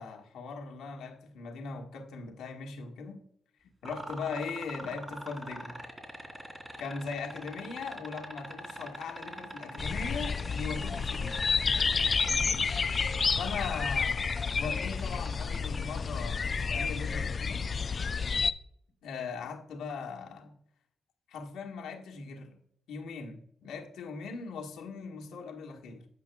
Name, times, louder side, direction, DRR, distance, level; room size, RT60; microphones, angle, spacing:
voice 1, 0.0-3.2 3.8-5.8 6.8-11.4 12.2-12.7 13.4-17.7 19.0-20.6 21.3-22.6 22.9-26.1, left 5 dB, 85° left, 1.4 m, -40 dB
sound 1, 3.8-16.0 17.7-17.8, right 1 dB, 25° right, 2.8 m, -43 dB
sound 2, 9.8-18.5, left 5 dB, 50° left, 0.4 m, -30 dB
15.5 x 5.9 x 2.3 m
supercardioid pair, 55°, 0 cm